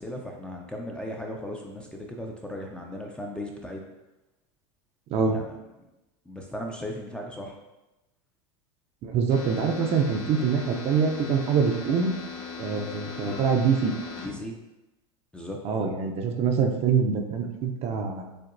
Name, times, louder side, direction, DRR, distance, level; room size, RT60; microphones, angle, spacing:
voice 1, 0.0-3.8 5.1-5.6 6.3-7.6 14.2-14.6 15.3-15.6, left 1 dB, 5° left, 1 dB, 0.5 m, -37 dB
voice 2, 9.0-12.1 12.6-13.9 15.6-18.4, right 6 dB, 40° right, 3 dB, 0.5 m, -25 dB
sound 1, 9.3-14.3, left 5 dB, 40° left, 0.9 m, -38 dB
6.5 x 2.2 x 2.5 m, 0.99 s
supercardioid pair, 115°, 16 cm